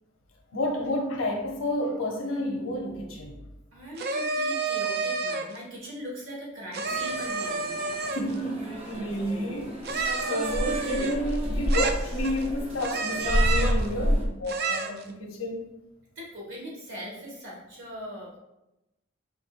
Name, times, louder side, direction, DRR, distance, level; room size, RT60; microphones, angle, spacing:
voice 1, 0.5-3.4 8.1-15.6, equal, 85° left, 1 dB, 0.7 m, -30 dB
voice 2, 3.7-7.7 9.9-10.6 16.1-18.4, equal, 70° right, -4 dB, 1.6 m, -40 dB
sound 1, 4.0-5.6 6.7-8.4 9.8-11.4 11.7-12.4 12.8-13.8 14.5-15.0, right 4 dB, 50° right, 0.4 m, -30 dB
sound 2, 6.8-14.2, equal, 25° right, 0.8 m, -30 dB
5.4 x 3.7 x 2.4 m, 0.91 s
head